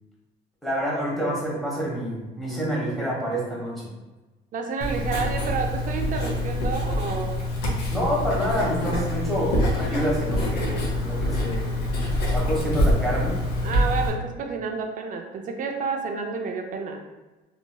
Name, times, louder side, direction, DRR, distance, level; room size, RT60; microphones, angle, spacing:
voice 1, 0.6-3.9 7.9-11.7 12.3-13.3, equal, ahead, -6 dB, 1.1 m, -27 dB
voice 2, 4.5-7.4 13.6-17.0, right 5 dB, 50° right, 3 dB, 0.5 m, -30 dB
Writing, 4.8-14.1, left 1 dB, 75° left, 0.8 m, -25 dB
3.0 x 2.7 x 2.2 m, 1.1 s
cardioid pair, 110°, 17 cm